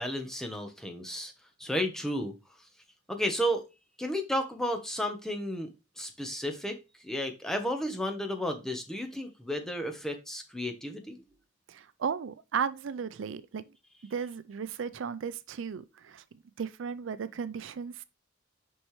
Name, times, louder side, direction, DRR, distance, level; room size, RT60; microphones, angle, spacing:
voice 1, 0.0-1.3 1.6-2.3 3.1-3.6 4.0-5.7 6.0-6.8 7.0-11.2, equal, 5° left, 1.0 m, -32 dB
voice 2, 11.7-13.7 14.1-16.2 16.6-18.0, right 6 dB, 80° right, 0.4 m, -35 dB
6.0 x 5.5 x 3.2 m
head